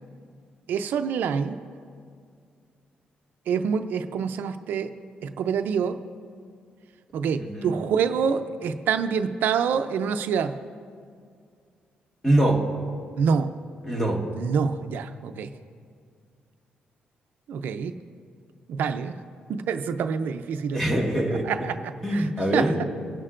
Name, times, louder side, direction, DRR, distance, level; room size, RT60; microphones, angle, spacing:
voice 1, 0.7-1.6 3.5-4.9 5.2-6.0 7.1-10.6 13.2-13.5 14.3-15.5 17.5-18.0 18.7-19.2 19.5-20.8 21.4-22.7, right 6 dB, 80° right, 9 dB, 0.5 m, -26 dB
voice 2, 7.4-7.8 12.2-12.7 13.8-14.3 20.7-21.5 22.0-22.8, right 1 dB, 10° left, 0 dB, 1.6 m, -23 dB
23.5 x 11.0 x 2.5 m, 2.2 s
wide cardioid pair, 155°, 3 cm